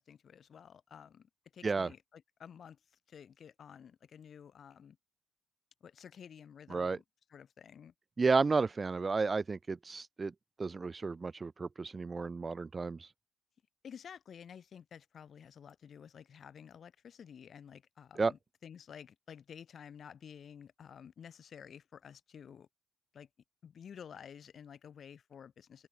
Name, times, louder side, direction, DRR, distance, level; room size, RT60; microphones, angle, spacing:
voice 1, 0.0-2.8 3.1-5.0 5.8-7.0 7.3-7.9 13.8-22.7 23.1-23.3 23.6-25.9, left 8 dB, 55° left, 3.5 m, -52 dB
voice 2, 8.2-10.3 10.6-13.1 18.2-18.3, right 4 dB, 30° right, 1.9 m, -32 dB
cardioid pair, 90°, 0 cm